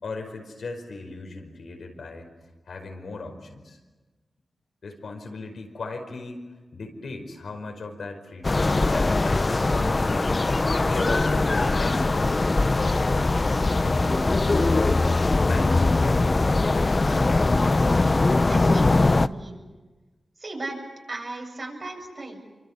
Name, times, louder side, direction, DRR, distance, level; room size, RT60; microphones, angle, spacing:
voice 1, 0.0-2.3 2.7-3.8 4.8-6.4 6.7-9.9 10.7-15.0 15.4-16.8, left 3 dB, 80° left, 4 dB, 5.0 m, -36 dB
sound 1, 8.4-19.3, left 3 dB, 40° left, 0.8 m, -21 dB
voice 2, 18.0-19.6 20.4-20.8 21.1-22.4, right 2 dB, 50° right, 3 dB, 7.7 m, -36 dB
26.5 x 24.0 x 8.4 m, 1.3 s
cardioid pair, 45°, 0 cm